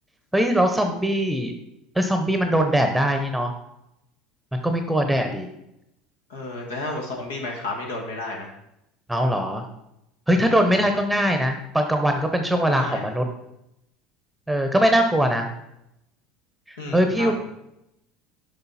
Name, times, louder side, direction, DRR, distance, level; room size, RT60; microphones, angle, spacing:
voice 1, 0.3-1.5 2.0-3.5 4.5-5.5 9.1-9.6 10.3-13.3 14.5-15.5 16.7-17.4, equal, 5° right, 5 dB, 0.8 m, -21 dB
voice 2, 6.3-8.5 10.6-11.0 12.6-13.1 16.8-17.4, left 2 dB, 85° left, 0 dB, 1.5 m, -32 dB
6.8 x 5.3 x 4.1 m, 0.84 s
hypercardioid pair, 75°, 0 cm